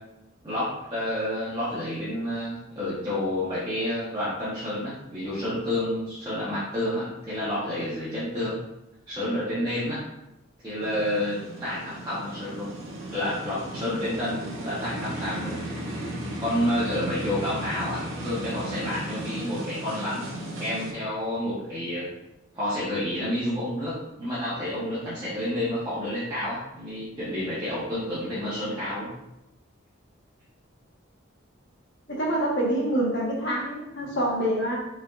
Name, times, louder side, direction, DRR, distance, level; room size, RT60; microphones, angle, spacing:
voice 1, 0.4-8.5 9.1-10.0 10.6-12.7 13.1-15.6 16.4-20.3 20.6-22.1 22.5-29.1 34.0-34.1, left 1 dB, 20° right, -10 dB, 1.0 m, -29 dB
sound 1, 10.8-20.9, right 1 dB, 85° right, 0.8 m, -35 dB
voice 2, 32.2-34.8, right 1 dB, 60° left, -3 dB, 1.2 m, -26 dB
5.1 x 3.4 x 2.4 m, 0.93 s
head